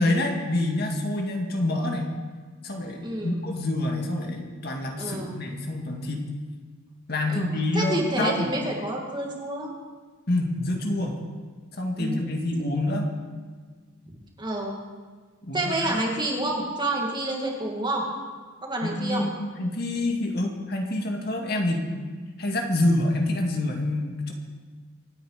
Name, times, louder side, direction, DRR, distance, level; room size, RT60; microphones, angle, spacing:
voice 1, 0.0-2.1 2.6-6.3 7.1-8.6 10.3-11.2 11.7-13.1 15.4-16.0 18.8-22.1 22.4-24.3, left 1 dB, 50° left, 2 dB, 2.1 m, -27 dB
voice 2, 3.0-3.4 5.0-5.4 7.3-7.5 7.7-9.7 12.0-12.3 14.1-14.8 15.5-18.0 18.6-19.3, right 1 dB, 20° right, -1 dB, 2.4 m, -29 dB
26.0 x 9.4 x 5.1 m, 1.5 s
head